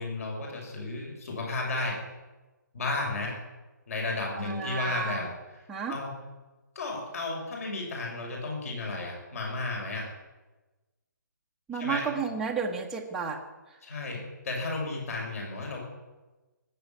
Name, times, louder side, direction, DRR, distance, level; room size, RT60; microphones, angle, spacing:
voice 1, 0.0-2.0 2.7-3.4 3.9-6.1 6.7-10.1 11.8-12.1 13.8-15.9, left 3 dB, 50° left, -1 dB, 6.7 m, -33 dB
voice 2, 4.3-5.2 5.7-6.0 11.7-13.4, right 6 dB, 5° right, -1 dB, 1.1 m, -32 dB
19.0 x 8.0 x 9.0 m, 1.2 s
hypercardioid pair, 165°, 10 cm